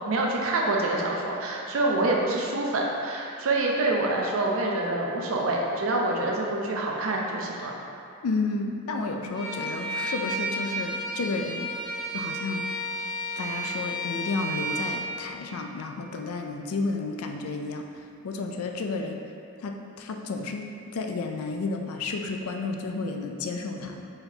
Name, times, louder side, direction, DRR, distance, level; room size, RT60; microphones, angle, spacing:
voice 1, 0.1-7.7, right 2 dB, 70° right, -1 dB, 0.6 m, -26 dB
voice 2, 8.2-11.7 12.1-12.6 13.4-17.9 18.2-19.2 19.6-24.1, left 3 dB, 90° left, 3 dB, 0.4 m, -32 dB
Bowed string instrument, 9.3-15.1, right 1 dB, 20° right, 1.1 m, -32 dB
4.5 x 3.8 x 2.8 m, 2.5 s
head